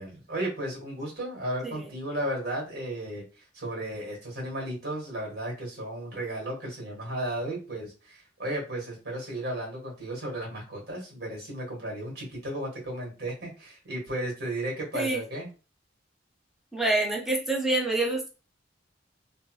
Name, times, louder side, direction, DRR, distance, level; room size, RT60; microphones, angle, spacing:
voice 1, 0.0-15.5, right 1 dB, 55° right, -2 dB, 1.7 m, -34 dB
voice 2, 16.7-18.3, right 2 dB, ahead, -1 dB, 0.6 m, -26 dB
3.2 x 2.1 x 3.0 m, 0.34 s
head